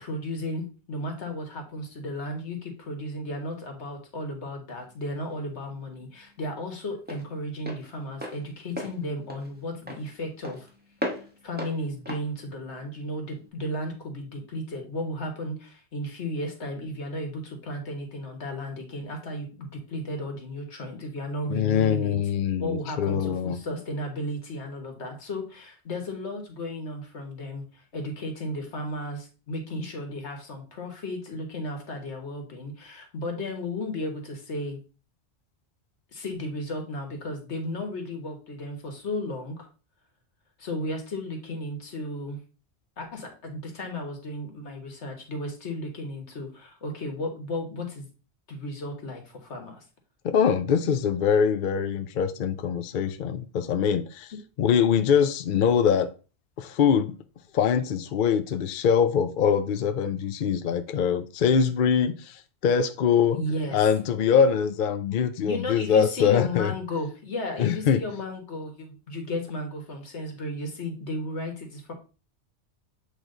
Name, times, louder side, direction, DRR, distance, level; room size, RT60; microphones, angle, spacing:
voice 1, 0.0-10.7 11.4-22.2 22.6-34.8 36.1-39.7 40.6-42.4 43.0-48.1 48.5-49.8 63.3-63.8 65.4-71.9, left 1 dB, 85° left, 1.7 m, -34 dB
Walk footsteps, 4.8-13.5, equal, 10° right, 1.1 m, -39 dB
voice 2, 21.5-23.6 50.2-54.3 54.6-56.1 56.6-57.2 57.5-63.4 63.7-66.7 67.6-68.0, left 7 dB, 60° left, 0.6 m, -23 dB
8.1 x 3.2 x 3.8 m
omnidirectional pair, 1.1 m